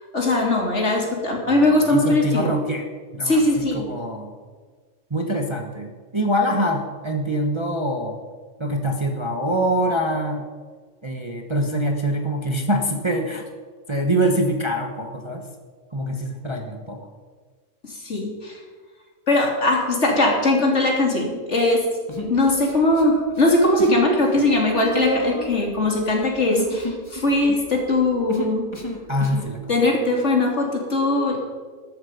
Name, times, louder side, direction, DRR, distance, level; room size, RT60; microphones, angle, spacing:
voice 1, 0.0-2.5 3.2-3.9 17.8-18.6 19.3-21.8 22.2-28.7 29.7-31.4, left 2 dB, 50° left, 0 dB, 3.1 m, -20 dB
voice 2, 1.5-2.8 3.1-4.3 5.1-8.2 8.6-10.4 11.0-13.4 13.9-15.4 15.9-17.0 29.1-29.6, equal, 20° right, 2 dB, 1.2 m, -24 dB
Human voice, 22.1-23.0 23.3-24.1 24.3-29.5, left 1 dB, 20° left, 1.6 m, -32 dB
13.5 x 13.5 x 5.3 m, 1.5 s
omnidirectional pair, 1.5 m